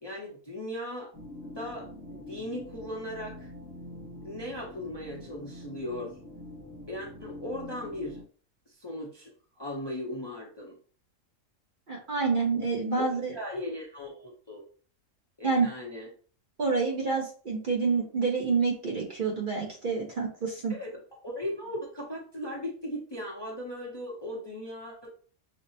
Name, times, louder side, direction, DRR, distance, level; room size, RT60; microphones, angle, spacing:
voice 1, 0.0-1.1 1.4-3.5 4.2-6.1 6.9-8.2 8.7-9.3 9.6-10.8 13.0-13.1 13.3-14.6 15.4-16.1 20.7-25.1, left 1 dB, 25° left, -3 dB, 0.6 m, -38 dB
sound 1, 1.1-8.2, left 1 dB, 20° right, 1.1 m, -45 dB
voice 2, 11.9-13.3 15.4-15.7 16.6-20.7, right 4 dB, 45° right, -1 dB, 0.8 m, -28 dB
5.2 x 2.0 x 2.7 m, 0.42 s
omnidirectional pair, 1.3 m